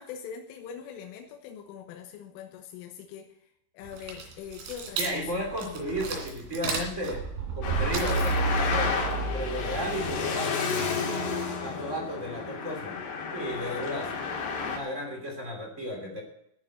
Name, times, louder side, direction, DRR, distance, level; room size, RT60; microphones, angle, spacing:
voice 1, 0.0-5.5 11.7-11.9 13.5-14.3, left 8 dB, 85° left, 4 dB, 3.7 m, -43 dB
sound 1, 3.8-10.4, right 4 dB, 80° right, 5.0 m, -32 dB
voice 2, 5.0-7.2 7.5-10.6 11.6-13.0 13.3-14.1 14.6-16.2, equal, 20° right, 0 dB, 2.4 m, -34 dB
Traffic noise roadway noise, 7.6-14.8, left 5 dB, 60° left, 4.3 m, -31 dB
14.5 x 7.2 x 9.1 m, 0.77 s
omnidirectional pair, 5.7 m